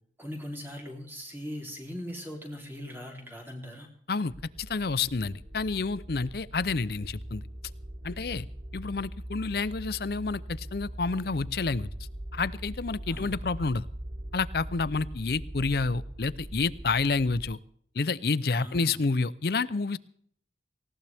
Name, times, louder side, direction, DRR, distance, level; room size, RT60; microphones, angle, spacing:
voice 1, 0.2-3.9 13.1-13.4 18.5-19.0, equal, 10° right, 0 dB, 3.4 m, -40 dB
voice 2, 4.1-7.4 8.0-8.5 8.7-11.9 12.3-13.9 14.3-17.6 17.9-20.0, left 4 dB, 55° left, 18 dB, 0.6 m, -29 dB
sound 1, 4.3-17.5, right 1 dB, 60° right, 5.4 m, -41 dB
19.0 x 17.5 x 3.5 m, 0.65 s
head